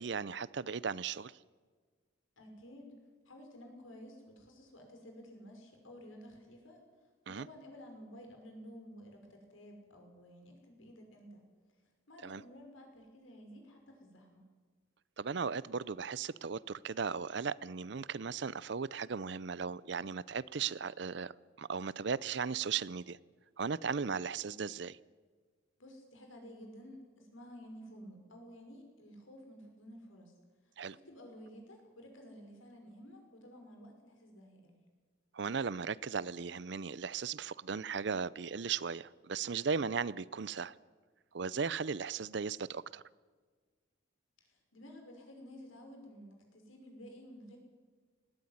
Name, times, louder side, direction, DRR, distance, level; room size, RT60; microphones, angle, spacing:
voice 1, 0.0-1.3 7.3-7.5 12.2-12.4 15.2-21.3 21.6-23.2 23.6-25.0 30.8-31.0 35.3-40.7 41.3-43.0, right 5 dB, 60° right, 20 dB, 0.5 m, -37 dB
voice 2, 2.4-3.0 3.3-6.8 7.3-11.4 12.1-14.4 25.8-30.3 30.9-34.7 44.4-47.6, equal, 85° left, 3 dB, 5.8 m, -53 dB
19.5 x 17.0 x 9.7 m, 1.5 s
head